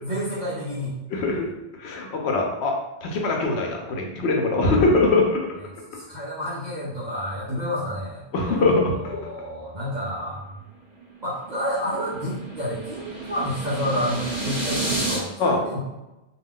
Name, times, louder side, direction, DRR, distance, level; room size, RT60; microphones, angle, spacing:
voice 1, 0.0-1.0 5.9-8.2 8.6-10.6 11.2-15.8, equal, 50° right, -7 dB, 0.7 m, -30 dB
voice 2, 1.1-1.5 1.8-2.7 3.0-5.5 7.5-7.6 8.3-9.2 15.4-15.6, left 3 dB, 75° left, 1 dB, 0.9 m, -22 dB
sound 1, 10.9-15.2, right 2 dB, 30° left, 1.0 m, -30 dB
2.4 x 2.3 x 3.5 m, 1.0 s
omnidirectional pair, 1.1 m